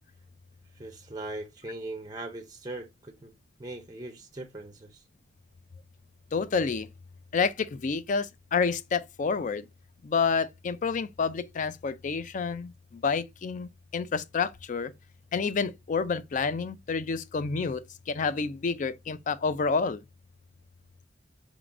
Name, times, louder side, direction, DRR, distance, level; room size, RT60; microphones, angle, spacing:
voice 1, 0.7-3.3 3.6-5.0, right 2 dB, 20° right, 0.5 m, -40 dB
voice 2, 6.3-6.9 7.3-9.6 10.0-14.9 15.3-20.0, left 5 dB, 40° left, 0.4 m, -29 dB
4.8 x 3.7 x 2.4 m
head